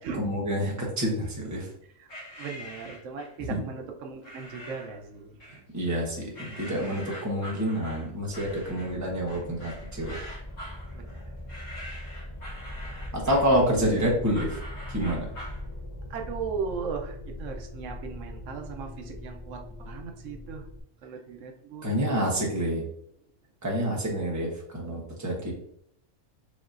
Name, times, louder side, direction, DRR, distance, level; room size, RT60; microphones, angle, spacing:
voice 1, 0.2-1.7 3.5-3.6 5.7-10.2 12.9-14.6 14.9-15.3 21.8-22.8 23.6-25.5, equal, 15° right, -3 dB, 1.0 m, -28 dB
sound 1, 2.1-3.4 4.2-5.0 5.4-6.0 6.3-15.6, equal, 80° left, 2.0 m, -44 dB
voice 2, 2.4-5.6 10.9-11.3 16.1-20.7 21.0-21.9, right 5 dB, 85° right, 3 dB, 1.0 m, -37 dB
sound 2, 8.2-20.8, left 1 dB, 45° left, 0.3 m, -40 dB
5.2 x 2.9 x 2.5 m, 0.72 s
omnidirectional pair, 1.3 m